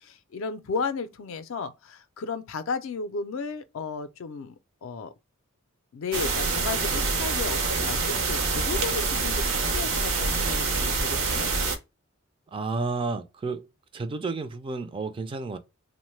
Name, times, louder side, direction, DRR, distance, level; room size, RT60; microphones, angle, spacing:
voice 1, 0.0-4.6 4.8-5.1 5.9-11.5, left 4 dB, 65° left, 0.4 m, -34 dB
sound 1, 6.1-11.8, right 4 dB, 75° right, 0.6 m, -26 dB
voice 2, 12.5-13.7 13.9-15.6, right 3 dB, 25° right, 0.3 m, -31 dB
3.0 x 2.1 x 3.1 m
head